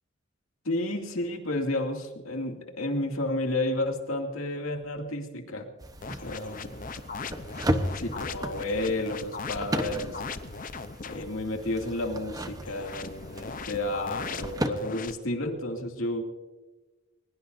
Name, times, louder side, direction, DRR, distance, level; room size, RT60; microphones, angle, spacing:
voice 1, 0.6-5.7 6.0-6.8 7.9-10.2 11.0-16.2, left 1 dB, 85° left, 3 dB, 2.5 m, -31 dB
sound 1, 5.8-14.7, right 1 dB, 20° right, 1.0 m, -35 dB
sound 2, 6.0-11.3 12.6-15.1, left 4 dB, 40° left, 0.8 m, -39 dB
22.5 x 20.5 x 2.7 m, 1.2 s
head